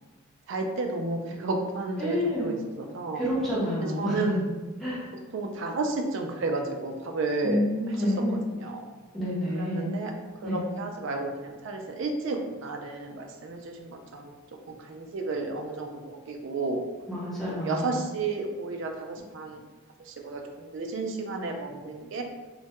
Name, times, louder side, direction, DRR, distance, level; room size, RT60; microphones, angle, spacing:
voice 1, 0.5-3.2 4.0-4.4 5.3-9.0 9.5-10.1 10.4-14.3 14.7-16.9 17.5-19.6 20.0-22.2, right 3 dB, 60° right, 3 dB, 0.3 m, -32 dB
voice 2, 2.0-2.6 3.1-4.4 4.8-5.1 7.4-8.4 9.1-9.9 10.4-10.6 17.1-17.9, left 1 dB, ahead, -9 dB, 0.6 m, -28 dB
2.2 x 2.1 x 2.8 m, 1.3 s
head